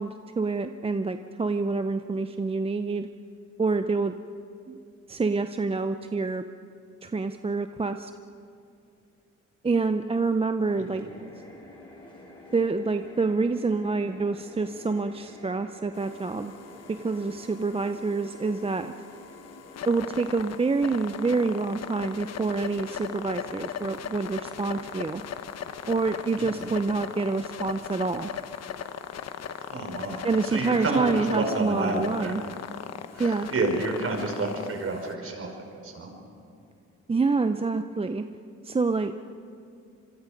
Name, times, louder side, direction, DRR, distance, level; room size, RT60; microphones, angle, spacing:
voice 1, 0.0-3.1 3.6-4.1 4.7-4.8 5.1-6.4 7.0-8.1 9.6-11.0 12.5-16.5 16.9-18.9 19.9-25.2 25.9-28.3 30.2-32.4 33.2-33.5 37.1-38.2 38.6-39.1, right 4 dB, 20° right, 8 dB, 0.7 m, -27 dB
sound 1, 10.6-25.0, left 1 dB, 15° left, 7.8 m, -50 dB
sound 2, 15.9-35.1, left 8 dB, 55° left, 1.1 m, -39 dB
voice 2, 26.4-26.7 29.7-32.3 33.1-35.5 35.7-36.1, right 3 dB, 50° right, 2 dB, 5.4 m, -30 dB
26.0 x 23.0 x 5.3 m, 2.5 s
cardioid pair, 90°, 30 cm